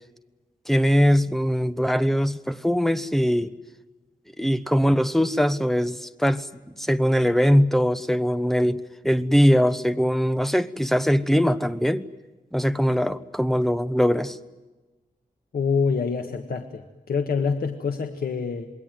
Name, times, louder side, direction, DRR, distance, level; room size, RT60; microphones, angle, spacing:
voice 1, 0.7-3.5 4.4-6.5 6.8-12.1 12.5-14.4, equal, ahead, 12 dB, 1.0 m, -21 dB
voice 2, 15.5-18.7, left 5 dB, 85° left, 5 dB, 1.6 m, -26 dB
27.5 x 21.0 x 9.2 m, 1.2 s
wide cardioid pair, 130°, 15 cm